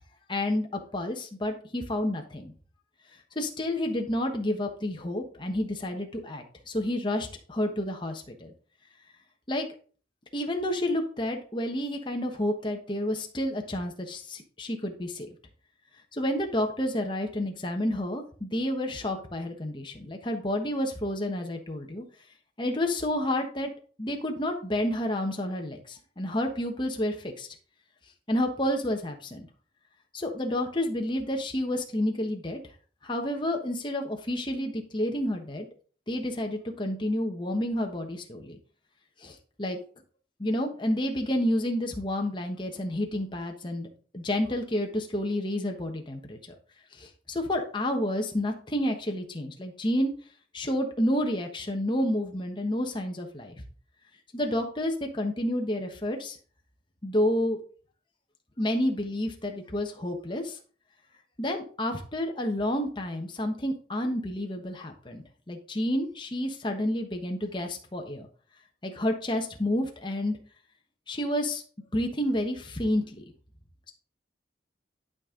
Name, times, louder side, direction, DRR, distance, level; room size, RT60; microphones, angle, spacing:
voice 1, 0.3-2.5 3.3-8.5 9.5-9.7 10.3-15.3 16.1-22.0 22.6-23.7 24.0-27.5 28.3-29.5 30.1-32.6 33.0-35.7 36.1-38.6 39.2-39.8 40.4-43.9 44.1-46.4 46.9-50.1 50.5-53.5 54.3-56.4 57.0-57.6 58.6-60.6 61.4-68.3 68.8-70.4 71.1-71.6 71.9-73.2, left 1 dB, 25° left, 3 dB, 1.2 m, -30 dB
11.5 x 5.3 x 3.8 m, 0.42 s
head